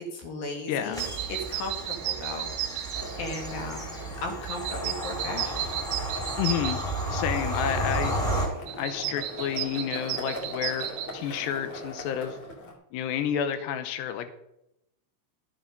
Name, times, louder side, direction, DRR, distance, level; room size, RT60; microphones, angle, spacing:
voice 1, 0.1-1.0 1.3-2.5 3.2-5.7, left 2 dB, 60° left, 2 dB, 2.8 m, -36 dB
voice 2, 0.7-1.0 6.4-6.8 7.1-8.1 8.8-12.4 12.9-14.3, left 9 dB, 85° left, 9 dB, 2.5 m, -30 dB
Bird vocalization bird call bird song / Train, 0.9-8.5, right 1 dB, ahead, 2.1 m, -32 dB
sound 1, 1.0-12.4, right 12 dB, 85° right, 2.4 m, -36 dB
Skateboard, 2.9-12.7, left 1 dB, 40° left, 2.3 m, -41 dB
13.0 x 8.1 x 5.2 m, 0.84 s
omnidirectional pair, 5.8 m